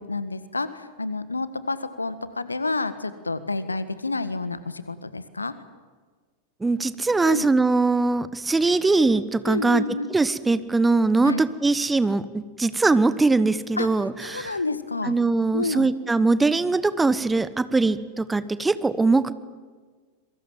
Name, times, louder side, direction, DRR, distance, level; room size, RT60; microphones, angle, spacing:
voice 1, 0.0-5.5 7.2-7.4 9.5-10.1 11.2-11.4 13.8-13.9 14.2-15.1 15.5-15.9, left 3 dB, 80° left, 14 dB, 1.6 m, -29 dB
voice 2, 6.6-9.8 10.1-14.6 15.0-19.3, right 3 dB, 10° right, 15 dB, 1.1 m, -21 dB
26.5 x 23.0 x 7.6 m, 1.5 s
figure-of-eight pair, 90°, 0 cm